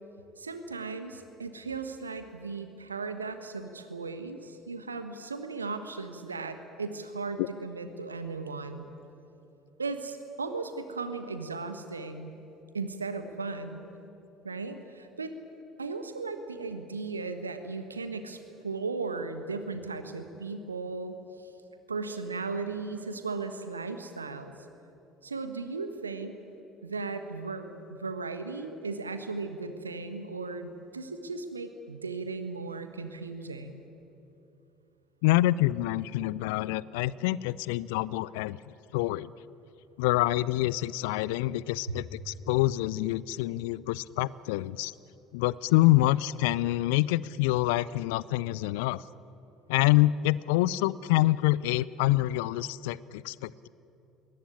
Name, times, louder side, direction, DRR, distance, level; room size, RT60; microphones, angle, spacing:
voice 1, 0.4-8.9 9.8-12.3 12.7-13.8 14.4-15.3 15.8-21.5 21.9-24.5 25.2-26.4 26.8-33.8 41.9-42.0, right 4 dB, 85° right, 9 dB, 1.3 m, -36 dB
voice 2, 35.2-38.6 38.9-39.3 40.0-44.9 45.3-49.0 49.7-53.7, left 17 dB, 65° left, 21 dB, 0.4 m, -26 dB
21.5 x 18.5 x 10.0 m, 2.9 s
figure-of-eight pair, 60°, 0 cm